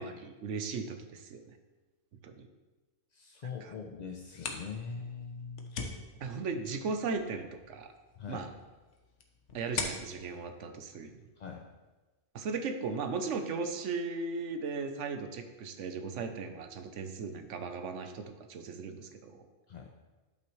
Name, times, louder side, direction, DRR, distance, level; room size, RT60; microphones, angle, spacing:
voice 1, 0.0-1.6 2.2-2.5 3.6-3.7 6.2-7.9 8.3-8.5 9.5-11.1 12.3-19.4, right 4 dB, 75° right, 7 dB, 1.1 m, -37 dB
voice 2, 3.1-5.8 8.2-8.5 11.4-11.6 19.7-19.9, left 5 dB, 50° left, 2 dB, 0.5 m, -42 dB
sound 1, 4.1-11.7, left 4 dB, 70° left, 1.1 m, -44 dB
10.5 x 5.8 x 3.1 m, 1.2 s
omnidirectional pair, 1.3 m